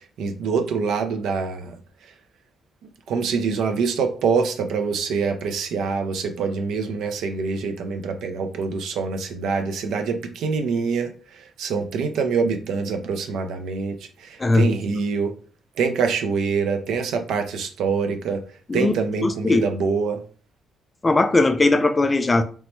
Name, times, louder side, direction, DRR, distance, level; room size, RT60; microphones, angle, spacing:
voice 1, 0.0-1.7 3.1-15.3 15.8-18.4 18.7-20.2, right 5 dB, 80° right, 0.5 m, -25 dB
voice 2, 14.4-14.8 18.7-18.9 19.2-19.7 21.0-22.4, left 2 dB, 20° left, 0.3 m, -19 dB
3.0 x 2.1 x 3.0 m
cardioid pair, 90°, 0 cm